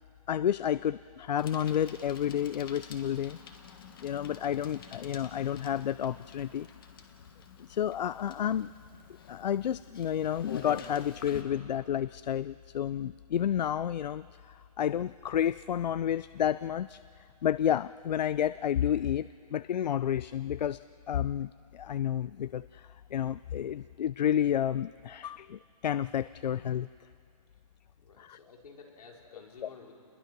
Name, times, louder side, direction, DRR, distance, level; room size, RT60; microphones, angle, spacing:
voice 1, 0.3-3.4 4.0-6.7 7.6-8.7 9.3-26.9 28.2-28.4, left 10 dB, 85° left, 17 dB, 0.5 m, -31 dB
Bicycle, 1.4-11.4, left 6 dB, 35° left, 1.5 m, -48 dB
voice 2, 28.0-29.9, left 4 dB, 65° left, -1 dB, 4.8 m, -52 dB
29.0 x 21.0 x 6.1 m, 2.4 s
hypercardioid pair, 175°, 21 cm